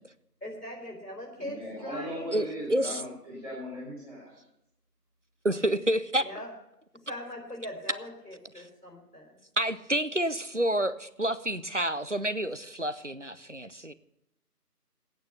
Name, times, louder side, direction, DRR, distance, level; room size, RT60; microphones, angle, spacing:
voice 1, 0.4-2.3 6.2-6.5 7.0-9.4, left 1 dB, 75° left, 2 dB, 4.5 m, -41 dB
voice 2, 1.4-4.4, equal, 20° right, -12 dB, 4.4 m, -38 dB
voice 3, 2.3-3.0 5.4-6.2 9.6-13.9, right 1 dB, 50° right, 15 dB, 0.5 m, -29 dB
14.0 x 8.9 x 6.9 m, 0.82 s
figure-of-eight pair, 175°, 48 cm